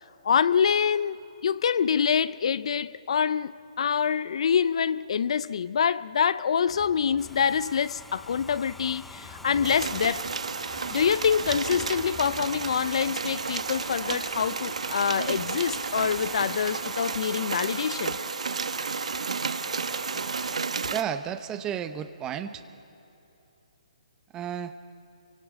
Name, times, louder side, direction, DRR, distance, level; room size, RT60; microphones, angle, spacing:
voice 1, 0.2-3.5 3.8-10.2 10.9-18.2, left 7 dB, 60° left, 0.5 m, -25 dB
Thunder, 6.7-16.4, left 5 dB, 25° left, 2.4 m, -48 dB
Domestic sounds home sounds, 7.2-20.6, left 1 dB, ahead, 0.6 m, -46 dB
sound 1, 9.6-21.0, right 5 dB, 75° right, 1.0 m, -32 dB
voice 2, 20.9-22.6 24.3-24.7, right 9 dB, 15° right, 0.9 m, -32 dB
29.0 x 24.5 x 5.0 m
hypercardioid pair, 145°, 4 cm